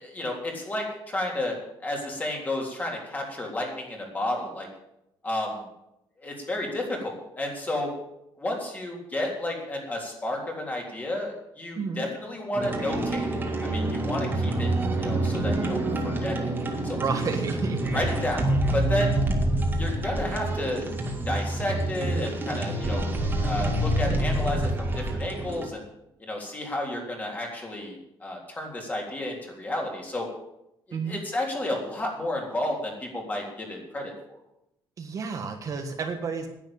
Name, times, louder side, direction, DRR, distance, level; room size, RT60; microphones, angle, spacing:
voice 1, 0.0-1.5 1.8-4.7 5.2-5.6 6.2-7.9 8.4-14.7 15.0-16.6 16.8-17.0 17.9-19.2 19.8-20.9 21.2-25.8 26.2-30.3 30.9-34.4, left 1 dB, 20° left, 0 dB, 3.5 m, -32 dB
voice 2, 11.8-12.1 17.0-17.8 30.9-31.2 35.0-36.5, right 5 dB, 40° right, 4 dB, 1.5 m, -30 dB
sound 1, 12.5-25.7, right 1 dB, 25° right, 2.0 m, -27 dB
10.5 x 9.6 x 8.5 m, 0.84 s
cardioid pair, 155°, 9 cm